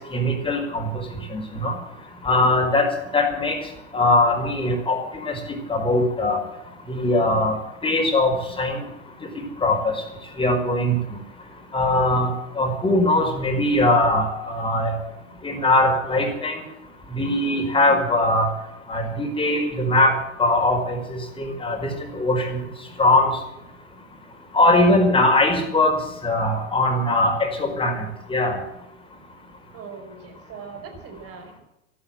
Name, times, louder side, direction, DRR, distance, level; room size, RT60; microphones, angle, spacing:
voice 1, 0.1-0.9 1.3-1.7 2.2-2.9 3.1-3.6 3.9-6.4 6.9-7.5 7.8-8.8 9.6-9.9 10.4-10.9 11.7-12.3 12.6-14.9 15.4-16.6 17.1-18.5 18.9-20.1 20.4-21.9 22.2-22.6 23.0-23.3 24.5-25.9 26.2-28.5, left 2 dB, 15° left, 3 dB, 5.0 m, -21 dB
voice 2, 29.7-31.6, right 5 dB, 35° right, 5 dB, 5.1 m, -40 dB
14.0 x 13.0 x 7.6 m, 0.91 s
hypercardioid pair, 100°, 39 cm